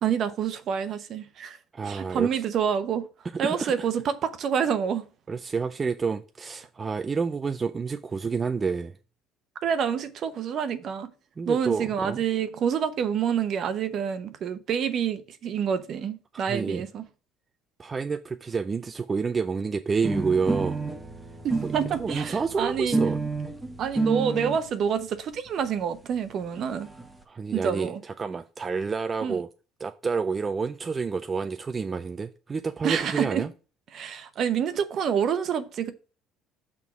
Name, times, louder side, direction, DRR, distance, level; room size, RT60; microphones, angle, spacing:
voice 1, 0.0-1.6 1.9-3.1 3.4-5.0 9.6-11.1 11.5-17.0 21.4-23.0 23.8-26.9 27.5-28.0 29.2-29.4 32.8-33.4 33.9-35.9, right 7 dB, 55° right, 0.9 m, -27 dB
voice 2, 1.7-2.4 3.4-3.9 5.3-8.9 11.4-12.2 16.5-16.8 17.8-20.8 21.6-21.7 22.0-23.2 27.3-29.5 29.8-33.5, right 5 dB, 30° right, 0.4 m, -29 dB
sound 1, 20.0-24.6 25.5-25.6 25.8-25.9 26.1-26.2 26.4-27.1, right 3 dB, 15° right, 1.1 m, -29 dB
6.1 x 3.6 x 6.0 m
supercardioid pair, 90°, 0 cm